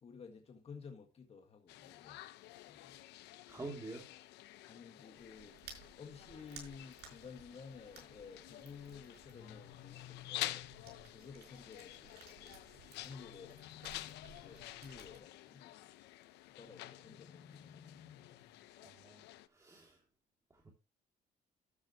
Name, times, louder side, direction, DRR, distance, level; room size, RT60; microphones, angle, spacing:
voice 1, 0.0-2.2 2.7-3.0 4.7-5.6 6.0-10.7 11.1-12.6 13.0-13.6 14.0-15.7 16.5-18.4, left 5 dB, 35° left, 1.8 m, -54 dB
sound 1, 1.7-19.5, left 15 dB, 85° left, 0.8 m, -50 dB
voice 2, 3.5-4.0 18.8-19.2 19.5-20.0 20.6-20.7, right 2 dB, 20° right, 2.9 m, -47 dB
sound 2, 5.1-15.2, right 6 dB, 75° right, 5.7 m, -59 dB
sound 3, 9.3-11.2 12.9-14.9 16.7-18.6, left 10 dB, 70° left, 3.6 m, -57 dB
12.5 x 8.8 x 3.0 m
cardioid pair, 110°, 17 cm